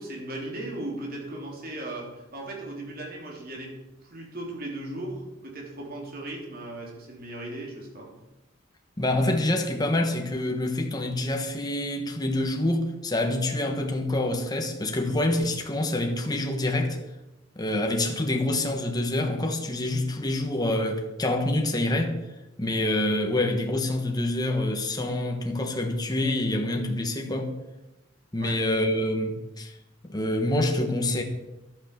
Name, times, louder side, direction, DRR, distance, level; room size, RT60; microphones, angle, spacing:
voice 1, 0.0-3.8 4.0-8.1 28.4-28.6, right 1 dB, 50° right, 3.6 m, -37 dB
voice 2, 9.0-17.0 17.6-22.2 22.6-27.5 28.3-29.7 30.1-31.2, left 1 dB, 20° left, 1.4 m, -26 dB
11.5 x 8.8 x 6.8 m
head